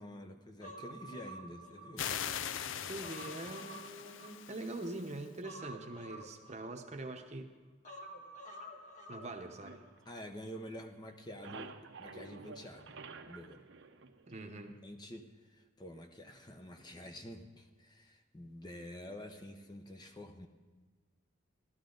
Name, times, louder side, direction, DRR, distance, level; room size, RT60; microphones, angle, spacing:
voice 1, 0.0-2.1 10.1-13.0 13.2-13.6 14.6-20.5, equal, 20° left, 5 dB, 0.7 m, -48 dB
Human voice, 0.6-2.4 2.8-4.8 5.4-7.2 7.8-9.8 10.1-10.2, right 1 dB, 35° left, 1.4 m, -50 dB
sound 1, 2.0-5.3, left 9 dB, 70° left, 0.5 m, -41 dB
voice 2, 2.8-7.5 9.1-9.8 14.3-14.7, right 2 dB, 35° right, 5 dB, 0.9 m, -43 dB
sound 2, 9.6-10.8 11.1-14.8, right 4 dB, 65° right, 0.8 m, -51 dB
16.0 x 12.5 x 3.9 m, 1.4 s
head